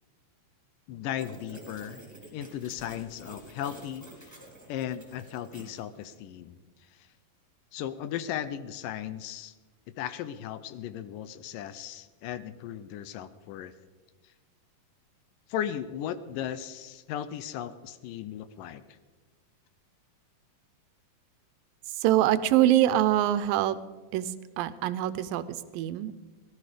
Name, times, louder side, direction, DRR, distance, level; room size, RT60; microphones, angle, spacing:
voice 1, 0.9-2.0 2.3-4.4 4.7-7.1 7.7-9.5 10.0-13.7 14.2-14.3 15.5-19.0, left 10 dB, 80° left, 13 dB, 2.2 m, -36 dB
sound 1, 1.2-6.2, right 1 dB, 5° right, 3.0 m, -49 dB
voice 2, 21.9-23.8 24.1-26.1, right 13 dB, 90° right, 14 dB, 2.4 m, -24 dB
18.0 x 13.0 x 5.0 m, 1.3 s
omnidirectional pair, 4.0 m